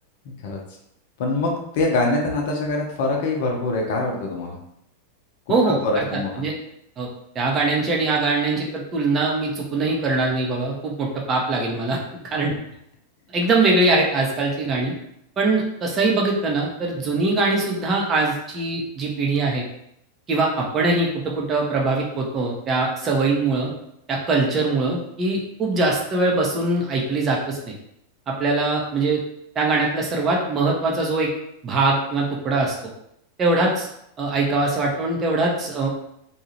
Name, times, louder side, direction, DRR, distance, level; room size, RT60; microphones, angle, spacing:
voice 1, 1.2-4.6 5.7-6.4, left 2 dB, 50° left, 0 dB, 0.7 m, -24 dB
voice 2, 5.5-6.0 6.4-6.5 7.0-7.1 7.3-12.0 12.3-12.5 13.3-14.9 15.4-19.6 20.3-23.7 24.1-27.7 28.3-29.2 29.6-31.3 31.6-32.8 33.4-33.9 34.2-35.9, right 3 dB, 25° right, -2 dB, 0.6 m, -22 dB
2.7 x 2.3 x 3.0 m, 0.76 s
figure-of-eight pair, 90°, 0 cm